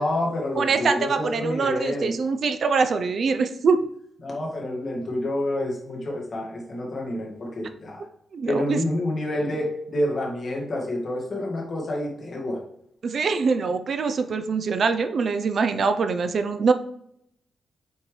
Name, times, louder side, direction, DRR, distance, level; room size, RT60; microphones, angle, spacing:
voice 1, 0.0-2.2 4.2-8.1 8.4-12.6, left 1 dB, 40° left, -2 dB, 2.0 m, -28 dB
voice 2, 0.6-3.9 8.3-8.8 13.0-16.7, right 5 dB, 50° right, 8 dB, 0.6 m, -23 dB
8.0 x 4.5 x 3.3 m, 0.73 s
wide cardioid pair, 150°, 0 cm